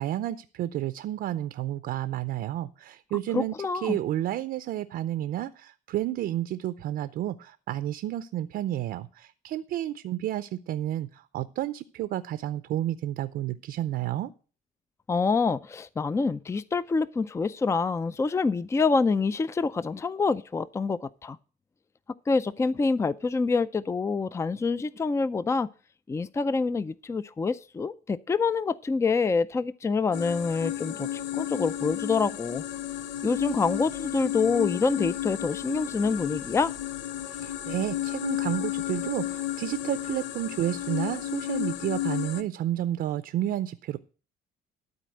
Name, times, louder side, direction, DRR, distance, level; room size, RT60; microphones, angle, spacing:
voice 1, 0.0-14.3 37.3-44.0, right 13 dB, 65° right, 0.6 m, -31 dB
voice 2, 3.3-4.0 15.1-21.4 22.3-25.7 26.1-32.6 33.2-36.7, left 4 dB, 15° left, 0.4 m, -26 dB
sound 1, 30.1-42.4, left 13 dB, 90° left, 0.7 m, -32 dB
12.5 x 4.2 x 7.7 m
cardioid pair, 110°, 17 cm